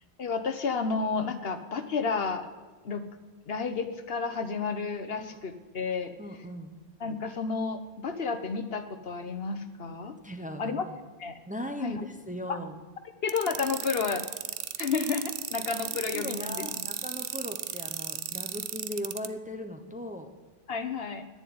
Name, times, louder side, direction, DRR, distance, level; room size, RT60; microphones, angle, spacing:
voice 1, 0.2-2.5 2.8-3.0 3.5-6.1 7.0-10.2 10.6-10.9 11.2-11.4 11.8-12.0 12.5-12.6 13.2-14.3 14.8-16.7 20.7-21.2, left 5 dB, 65° left, 9 dB, 1.2 m, -31 dB
voice 2, 6.2-6.8 10.2-11.0 11.5-12.8 15.8-20.3, equal, 10° right, 5 dB, 1.0 m, -38 dB
sound 1, 13.3-19.3, right 10 dB, 60° right, 0.8 m, -34 dB
10.5 x 10.0 x 9.5 m, 1.3 s
omnidirectional pair, 1.1 m